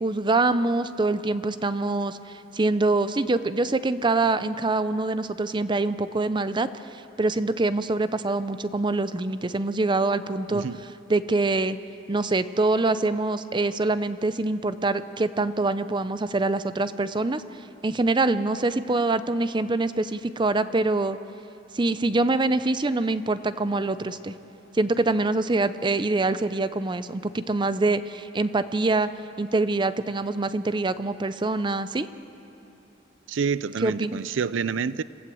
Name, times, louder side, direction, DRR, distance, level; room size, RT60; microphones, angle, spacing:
voice 1, 0.0-2.2 2.5-6.7 7.2-10.6 11.1-11.8 12.1-17.4 17.8-21.2 21.7-24.3 24.7-29.1 29.4-32.1 33.8-34.2, right 2 dB, 25° right, 0.5 m, -24 dB
voice 2, 10.5-10.8 33.3-35.0, right 6 dB, 75° right, 0.4 m, -28 dB
26.0 x 15.5 x 7.7 m
head